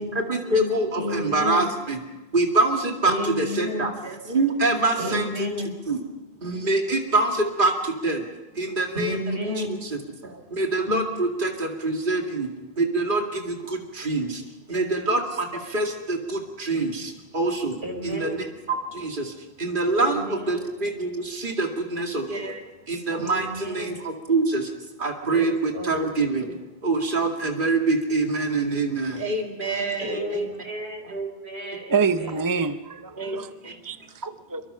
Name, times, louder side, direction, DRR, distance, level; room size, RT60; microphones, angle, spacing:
voice 1, 0.1-2.0 2.3-5.5 5.9-6.0 6.4-8.3 8.5-12.5 12.8-14.4 14.7-24.7 25.0-30.5 31.0-31.1 33.2-33.8, right 2 dB, 55° right, 2.5 m, -25 dB
voice 2, 1.0-1.7 3.1-3.9 5.0-5.7 8.9-9.8 10.9-11.1 17.8-18.4 19.9-20.6 23.1-24.0 25.3-26.0 30.0-32.3, left 1 dB, 85° right, 5.2 m, -31 dB
voice 3, 31.9-33.5 33.8-34.6, right 5 dB, 20° right, 0.8 m, -26 dB
26.5 x 24.0 x 5.6 m
omnidirectional pair, 1.1 m